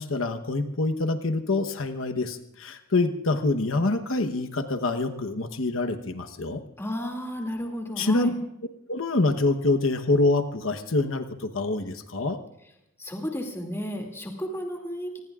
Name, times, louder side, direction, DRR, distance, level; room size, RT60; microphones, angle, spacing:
voice 1, 0.0-6.6 8.0-8.3 8.9-12.4, left 2 dB, 85° left, 8 dB, 1.1 m, -26 dB
voice 2, 6.8-8.3 13.0-15.2, equal, 15° left, 1 dB, 2.5 m, -33 dB
26.0 x 20.5 x 2.5 m, 0.83 s
head